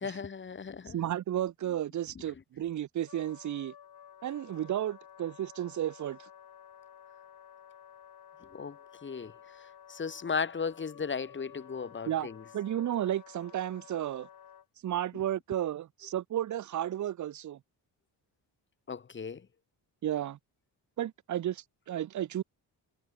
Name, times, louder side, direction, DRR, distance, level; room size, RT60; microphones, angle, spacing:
voice 1, 0.0-1.0 8.5-8.8 9.0-9.3 9.9-12.4 18.9-19.4, left 5 dB, 25° left, 0.8 m, -35 dB
voice 2, 0.9-3.7 4.2-6.3 12.1-12.3 12.5-14.3 14.8-17.6 20.0-20.4 21.0-22.4, right 11 dB, 45° right, 0.5 m, -33 dB
Wind instrument woodwind instrument, 3.1-14.7, left 9 dB, 60° left, 2.3 m, -53 dB
cardioid pair, 110°, 42 cm